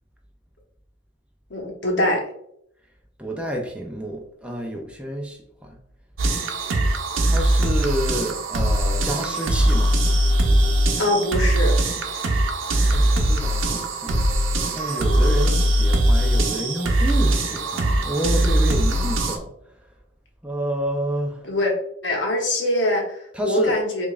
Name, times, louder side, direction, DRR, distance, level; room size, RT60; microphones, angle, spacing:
voice 1, 1.5-2.2 10.9-11.7 21.4-21.7 22.0-24.1, left 1 dB, 65° left, 0 dB, 0.9 m, -23 dB
voice 2, 3.2-5.4 7.3-9.9 12.3-14.2 14.7-19.5 20.4-21.4 23.3-23.7, right 1 dB, 5° right, 1 dB, 0.4 m, -29 dB
sound 1, 6.2-19.4, right 1 dB, 90° right, 0.6 m, -21 dB
5.0 x 2.4 x 2.4 m, 0.74 s
head